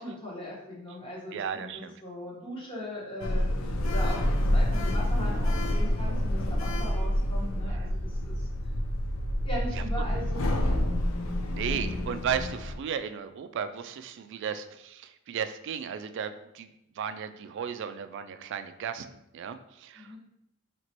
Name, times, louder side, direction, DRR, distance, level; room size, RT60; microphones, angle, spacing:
voice 1, 0.0-8.5 9.4-10.6 11.7-12.0 19.9-20.2, equal, 25° left, -6 dB, 1.3 m, -39 dB
voice 2, 1.3-1.9 7.7-7.8 9.8-9.9 11.5-16.7 17.0-20.2, right 7 dB, 60° right, 11 dB, 0.3 m, -35 dB
Sliding door, 3.2-12.8, left 1 dB, 80° left, 0.5 m, -28 dB
4.3 x 2.9 x 3.0 m, 0.82 s
head